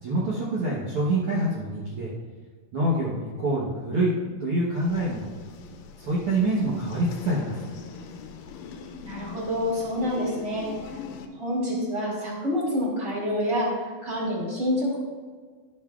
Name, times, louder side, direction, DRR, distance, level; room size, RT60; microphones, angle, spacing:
voice 1, 0.0-2.1 2.7-4.1 4.4-5.3 6.0-7.6, right 1 dB, 85° right, -6 dB, 1.2 m, -26 dB
sound 1, 4.8-11.3, left 6 dB, 85° left, 2.4 m, -42 dB
voice 2, 9.0-10.7 11.4-13.8 14.0-15.0, left 1 dB, 25° right, -5 dB, 2.1 m, -27 dB
12.5 x 7.3 x 2.4 m, 1.5 s
omnidirectional pair, 4.2 m